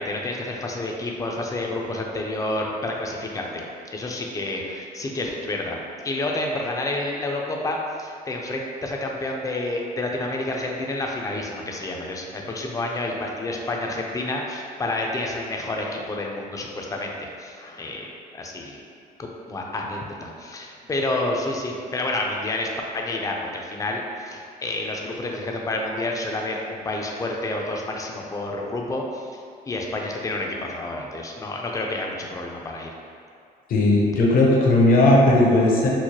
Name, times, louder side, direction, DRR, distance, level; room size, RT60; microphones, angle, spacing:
voice 1, 0.0-3.6 3.9-5.8 6.0-18.8 19.5-29.3 29.7-32.9, left 2 dB, 20° left, 0 dB, 0.4 m, -29 dB
voice 2, 33.7-35.9, left 2 dB, 55° left, -2 dB, 0.7 m, -17 dB
4.5 x 2.1 x 2.9 m, 2.3 s
cardioid pair, 110°, 17 cm